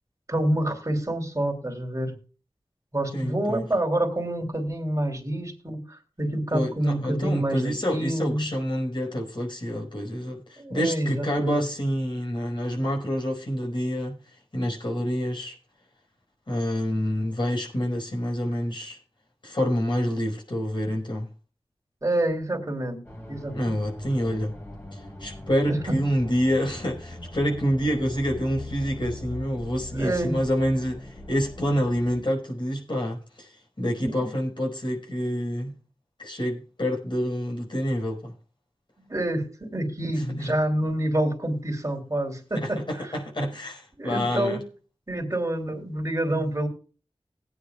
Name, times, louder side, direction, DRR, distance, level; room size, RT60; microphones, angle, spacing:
voice 1, 0.3-2.1 2.9-8.5 10.6-11.6 22.0-23.0 23.3-23.8 25.7-26.0 29.9-30.4 34.0-34.3 39.1-43.2 44.0-44.6 45.1-46.7, right 1 dB, 35° right, 3.1 m, -27 dB
voice 2, 3.1-3.6 6.5-14.2 14.5-15.5 16.5-19.0 19.4-21.3 23.5-24.5 25.2-33.5 33.8-35.7 36.2-38.3 42.6-44.6 46.3-46.5, equal, 50° left, 4.8 m, -27 dB
sound 1, 23.0-32.2, left 1 dB, 25° left, 3.9 m, -41 dB
19.5 x 9.6 x 2.4 m
wide cardioid pair, 45°, 10 cm